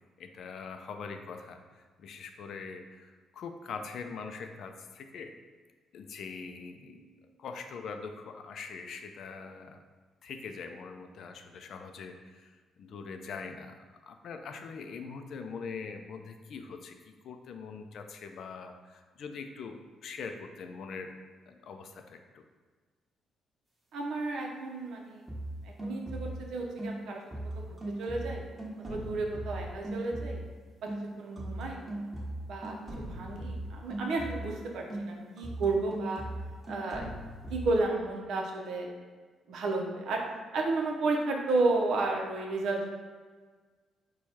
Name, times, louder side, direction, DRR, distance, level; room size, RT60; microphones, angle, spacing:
voice 1, 0.2-5.3 5.9-7.1 7.4-9.8 10.2-17.0 17.2-21.2 21.5-22.4 28.9-29.0, left 5 dB, 65° left, 6 dB, 0.4 m, -43 dB
voice 2, 23.9-25.2 25.6-27.2 27.5-28.4 28.8-30.4 30.8-30.9 31.2-31.8 32.4-36.2 36.7-37.1 37.5-38.9 39.5-40.2 40.5-42.9, right 3 dB, 75° right, 1 dB, 0.7 m, -32 dB
sound 1, 25.3-26.5 26.8-30.6 30.9-34.6 34.9-37.7, right 1 dB, 20° right, 1.2 m, -39 dB
4.6 x 2.3 x 4.2 m, 1.4 s
cardioid pair, 90°, 0 cm